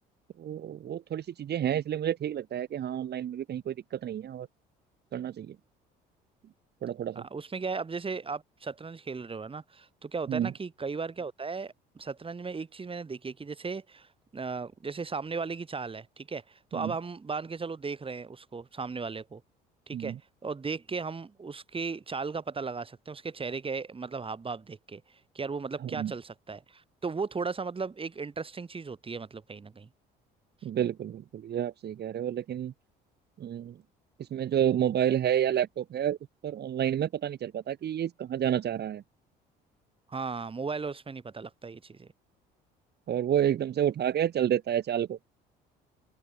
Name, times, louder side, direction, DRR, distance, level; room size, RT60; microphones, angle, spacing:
voice 1, 0.4-4.5 5.1-5.6 6.8-7.3 10.3-10.5 16.7-16.9 19.9-20.2 25.8-26.1 30.6-32.7 33.4-33.8 34.2-36.2 36.4-39.0 43.1-45.2, right 10 dB, 55° right, 3.0 m, -30 dB
voice 2, 7.2-19.4 19.9-20.1 20.4-29.9 40.1-42.1, right 4 dB, 25° right, 2.1 m, -36 dB
supercardioid pair, 70°, 20 cm